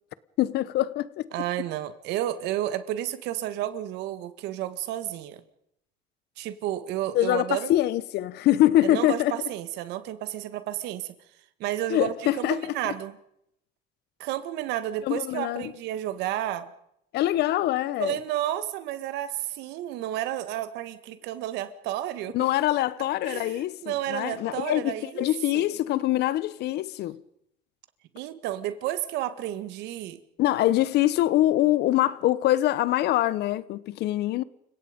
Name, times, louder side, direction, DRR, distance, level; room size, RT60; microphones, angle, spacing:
voice 1, 0.4-1.3 7.1-9.4 11.9-12.9 15.0-15.7 17.1-18.2 22.3-27.2 30.4-34.4, left 14 dB, 75° left, 1.1 m, -24 dB
voice 2, 1.3-5.4 6.4-7.7 8.8-11.1 11.6-13.2 14.2-16.7 18.0-22.4 23.2-25.3 25.5-25.7 28.1-30.2, right 13 dB, 90° right, 1.9 m, -31 dB
29.5 x 17.0 x 5.3 m
cardioid pair, 110°, 17 cm